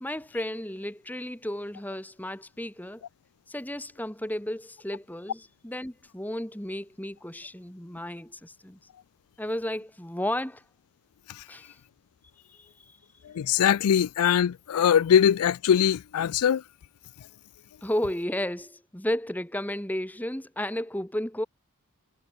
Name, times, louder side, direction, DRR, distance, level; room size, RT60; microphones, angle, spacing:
voice 1, 0.0-3.0 3.5-8.8 9.4-10.6 11.5-11.8 12.5-13.0 17.8-21.4, left 1 dB, 5° left, 1.2 m, -33 dB
voice 2, 13.3-16.6, left 8 dB, 85° left, 0.4 m, -22 dB
head